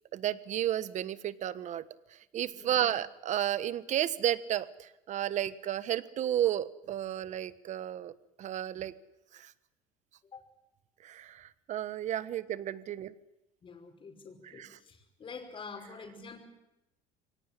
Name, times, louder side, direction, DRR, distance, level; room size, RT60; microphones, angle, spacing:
voice 1, 0.1-1.8 2.1-8.1 8.4-8.9 9.3-9.5 11.0-13.1 14.4-14.8, right 11 dB, 45° right, 16 dB, 1.3 m, -32 dB
voice 2, 2.5-2.8 10.3-10.4 12.1-12.3 13.6-16.5, left 5 dB, 30° left, 4 dB, 5.4 m, -47 dB
24.0 x 18.0 x 10.0 m, 0.94 s
cardioid pair, 120°, 17 cm